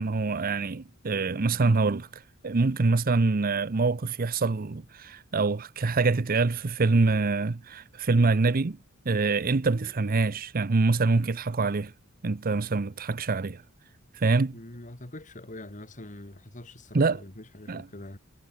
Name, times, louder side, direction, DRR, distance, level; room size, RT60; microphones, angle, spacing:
voice 1, 0.0-8.8 9.1-11.9 12.2-13.6 14.2-14.6 16.9-17.2 17.7-17.8, right 3 dB, 40° right, 0.7 m, -25 dB
voice 2, 14.5-18.2, left 1 dB, 35° left, 2.4 m, -44 dB
head